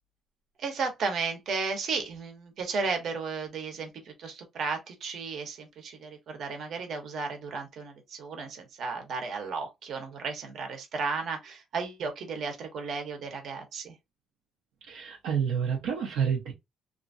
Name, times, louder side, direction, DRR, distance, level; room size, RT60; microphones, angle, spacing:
voice 1, 0.6-14.0, right 4 dB, 70° right, 1.1 m, -34 dB
voice 2, 14.9-16.5, right 7 dB, 90° right, 0.9 m, -29 dB
2.9 x 2.6 x 2.7 m
cardioid pair, 90°, 0 cm